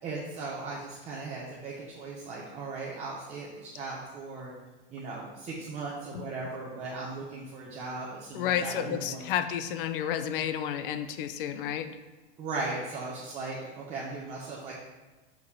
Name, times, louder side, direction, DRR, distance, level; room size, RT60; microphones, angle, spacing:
voice 1, 0.0-4.5 4.9-9.3 12.4-14.7, right 3 dB, 20° right, -5 dB, 1.0 m, -37 dB
voice 2, 8.3-11.9, left 9 dB, 55° left, 10 dB, 0.7 m, -31 dB
6.5 x 5.4 x 5.5 m, 1.3 s
supercardioid pair, 155°, 33 cm